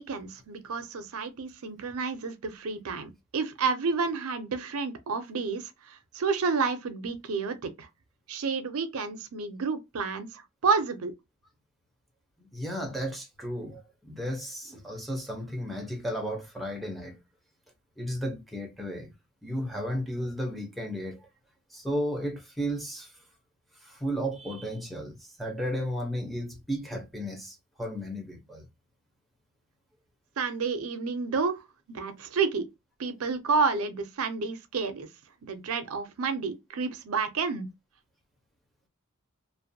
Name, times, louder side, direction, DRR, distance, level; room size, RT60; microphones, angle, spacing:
voice 1, 0.0-7.9 8.3-11.2 30.4-31.6 31.9-32.7 33.0-35.1 35.4-37.7, right 4 dB, 70° right, 0.5 m, -30 dB
voice 2, 12.4-17.2 18.0-19.1 19.4-21.3 21.7-23.1 23.8-28.7, equal, ahead, 0.6 m, -34 dB
2.5 x 2.1 x 2.6 m
head